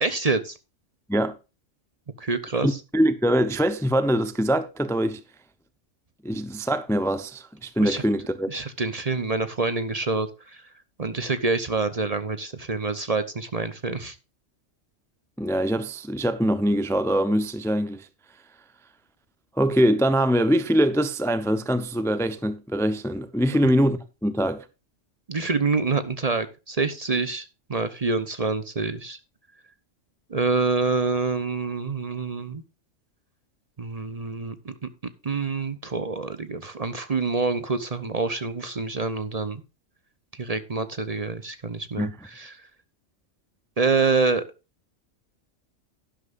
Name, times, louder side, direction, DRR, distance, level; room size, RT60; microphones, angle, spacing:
voice 1, 0.0-0.6 2.2-2.8 7.8-8.0 8.5-10.6 11.0-14.1 23.6-23.7 25.3-27.4 27.7-29.2 30.3-32.6 33.8-34.7 35.2-39.6 40.3-42.6 43.8-44.4, right 4 dB, 35° right, 0.8 m, -26 dB
voice 2, 2.6-5.2 6.2-8.5 15.4-18.1 19.6-24.6 42.0-42.1, equal, 5° left, 0.6 m, -23 dB
11.5 x 11.0 x 2.5 m
omnidirectional pair, 1.3 m